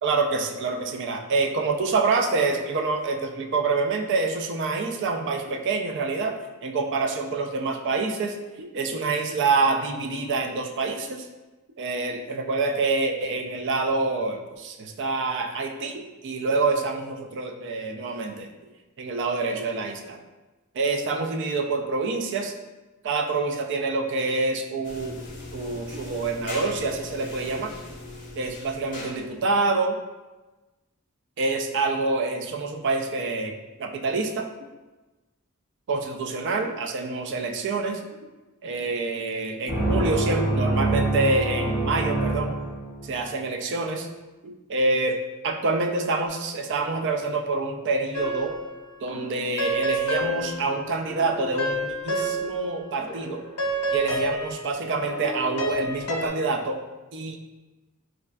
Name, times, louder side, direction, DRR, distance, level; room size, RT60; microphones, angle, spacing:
voice 1, 0.0-6.4 6.6-11.3 11.8-18.5 19.0-20.2 20.7-22.5 23.0-25.2 25.5-27.7 28.4-30.0 31.4-33.5 33.8-34.7 35.9-38.0 38.6-42.6 43.0-44.1 44.4-45.2 45.4-48.5 49.0-53.4 53.9-56.8 57.1-57.4, right 3 dB, 55° right, 4 dB, 0.3 m, -26 dB
sound 1, 24.8-29.5, left 2 dB, 40° left, 0.6 m, -39 dB
sound 2, 39.7-43.3, right 2 dB, 15° right, 0.6 m, -25 dB
sound 3, 48.1-48.8 49.1-52.8 53.1-56.3, right 1 dB, 85° left, 0.5 m, -29 dB
4.2 x 2.4 x 2.2 m, 1.1 s
head